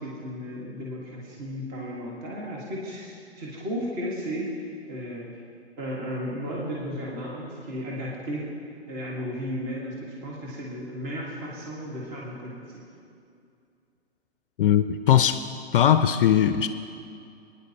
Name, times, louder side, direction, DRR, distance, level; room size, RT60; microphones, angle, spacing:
voice 1, 0.0-5.4 5.8-8.5 8.9-12.8, equal, 30° right, -4 dB, 1.7 m, -34 dB
voice 2, 14.6-15.4 15.7-16.7, left 10 dB, 55° left, 10 dB, 0.5 m, -19 dB
21.5 x 10.0 x 2.9 m, 2.4 s
hypercardioid pair, 125°, 33 cm